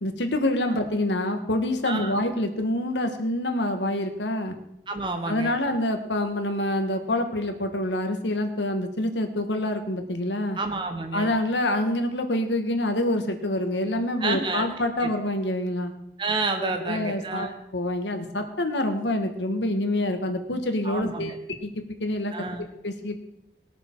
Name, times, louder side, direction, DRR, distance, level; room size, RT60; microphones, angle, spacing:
voice 1, 0.0-4.5 5.3-10.6 11.1-15.9 16.6-22.5 22.8-23.2, left 1 dB, 90° left, 6 dB, 1.5 m, -26 dB
voice 2, 4.9-5.6 10.6-11.3 14.2-14.7 15.0-15.1 16.2-17.5 20.8-21.4 22.3-22.7, right 3 dB, 25° right, 5 dB, 0.8 m, -29 dB
20.0 x 6.9 x 4.6 m, 0.84 s
head